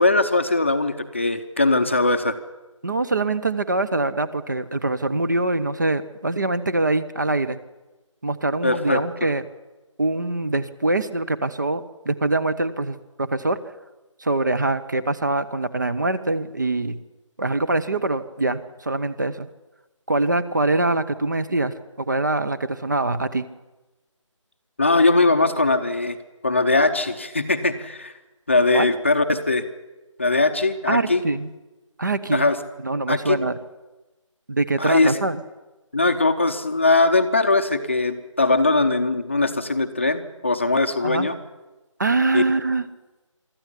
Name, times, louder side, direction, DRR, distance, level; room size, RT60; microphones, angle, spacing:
voice 1, 0.0-2.3 8.6-9.0 24.8-26.2 26.4-28.1 28.5-29.6 30.2-31.2 32.3-32.6 33.1-33.4 34.8-35.2 35.9-41.4 42.3-42.4, left 2 dB, 25° left, 7 dB, 0.8 m, -20 dB
voice 2, 2.8-7.6 8.2-9.4 10.0-13.6 14.2-17.0 17.4-19.5 20.1-23.4 28.7-28.9 30.9-31.5 32.0-32.5 32.8-33.6 34.5-35.4 41.0-41.3 42.0-42.8, right 2 dB, 35° right, 11 dB, 1.0 m, -24 dB
24.0 x 13.5 x 9.9 m, 1.1 s
figure-of-eight pair, 175°, 17 cm